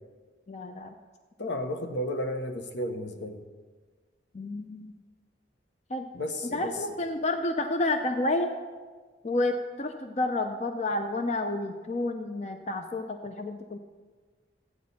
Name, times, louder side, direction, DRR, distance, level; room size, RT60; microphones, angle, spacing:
voice 1, 0.5-0.9 4.3-4.9 5.9-6.1 6.4-8.5 9.2-13.8, left 2 dB, 35° left, 6 dB, 0.5 m, -30 dB
voice 2, 1.4-3.4 6.1-6.7, left 1 dB, 70° left, 7 dB, 0.9 m, -33 dB
14.0 x 9.4 x 4.1 m, 1.4 s
head